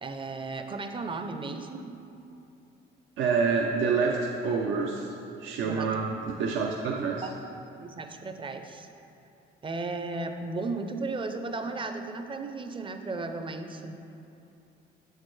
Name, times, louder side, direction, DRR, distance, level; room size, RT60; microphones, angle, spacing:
voice 1, 0.0-2.0 5.6-5.9 7.2-7.4 7.8-8.9 9.6-14.0, right 3 dB, 25° right, 7 dB, 0.5 m, -35 dB
voice 2, 3.2-5.1 5.4-7.2, right 5 dB, 75° right, 0 dB, 0.5 m, -27 dB
7.1 x 6.5 x 3.2 m, 2.7 s
cardioid pair, 90°, 20 cm